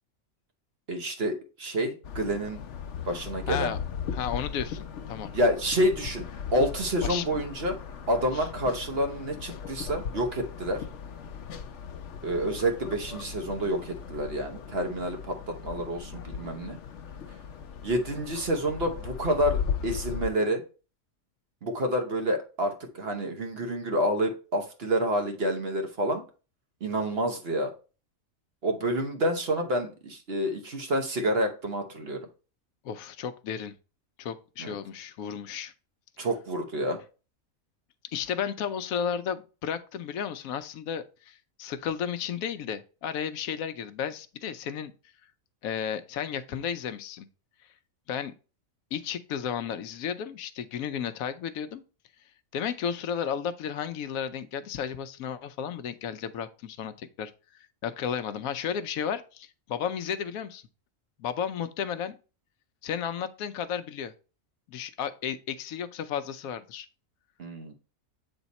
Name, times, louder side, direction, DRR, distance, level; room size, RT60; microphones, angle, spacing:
voice 1, 0.9-2.6 3.0-3.7 5.3-6.2 6.5-7.8 8.1-10.8 12.2-16.8 17.8-20.6 21.6-26.2 26.8-27.7 28.6-32.2 34.6-34.7 36.2-37.0 67.4-67.7, equal, 50° right, 1.1 m, -28 dB
sound 1, 2.0-20.3, left 7 dB, 65° left, 0.9 m, -37 dB
voice 2, 3.5-3.8 4.1-5.3 7.0-7.3 8.3-8.5 32.8-33.7 34.2-35.7 38.1-44.9 45.6-47.3 48.1-48.3 48.9-51.8 52.5-60.6 61.2-62.1 62.8-64.1 64.7-66.9, left 8 dB, 85° left, 1.1 m, -33 dB
8.1 x 3.5 x 4.1 m
omnidirectional pair, 1.4 m